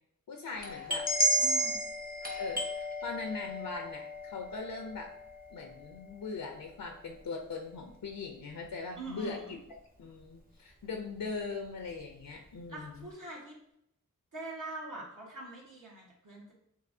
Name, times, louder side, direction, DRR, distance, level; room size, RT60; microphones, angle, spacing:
voice 1, 0.3-1.1 2.4-5.1 5.5-9.6 10.0-13.1, left 4 dB, 75° left, 3 dB, 0.6 m, -40 dB
Doorbell, 0.6-10.0 10.2-10.3 11.0-11.3 11.6-13.0, left 4 dB, 25° right, 0.8 m, -42 dB
sound 1, 1.1-5.1, right 2 dB, 25° left, 0.4 m, -32 dB
voice 2, 1.4-1.8 9.0-9.6 12.7-13.6 14.3-16.5, right 2 dB, 65° right, -4 dB, 1.4 m, -43 dB
6.7 x 2.6 x 2.7 m, 0.77 s
wide cardioid pair, 70°, 34 cm